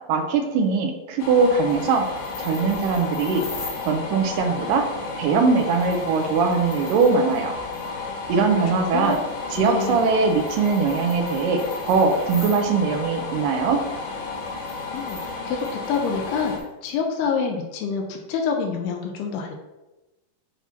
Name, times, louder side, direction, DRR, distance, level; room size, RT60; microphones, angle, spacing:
voice 1, 0.1-2.1 2.4-3.5 3.8-4.8 5.2-7.5 8.3-9.2 9.6-13.8, right 4 dB, 80° right, 4 dB, 2.0 m, -21 dB
sound 1, 1.2-16.6, left 4 dB, 60° left, 2.0 m, -33 dB
sound 2, 1.6-3.9 5.6-7.4 7.7-7.9 9.0-12.6 14.3-16.9, left 2 dB, 35° left, 1.2 m, -42 dB
voice 2, 8.7-9.1 9.6-10.0 14.9-15.2 15.5-19.6, left 5 dB, 85° left, 2 dB, 2.7 m, -27 dB
8.3 x 2.9 x 5.8 m, 1.0 s
omnidirectional pair, 4.5 m